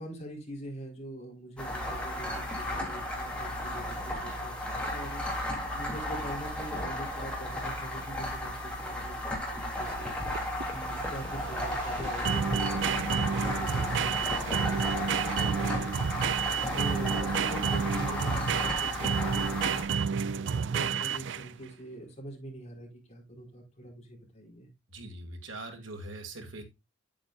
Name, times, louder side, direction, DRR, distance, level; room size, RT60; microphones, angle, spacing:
voice 1, 0.0-19.8 20.1-24.7, right 1 dB, 35° left, 4.3 m, -44 dB
sound 1, 1.6-19.8, left 1 dB, 5° left, 3.1 m, -34 dB
sound 2, 10.0-21.6, right 6 dB, 65° right, 0.4 m, -30 dB
voice 2, 24.9-26.6, right 2 dB, 90° right, 2.4 m, -42 dB
9.3 x 8.7 x 2.5 m
head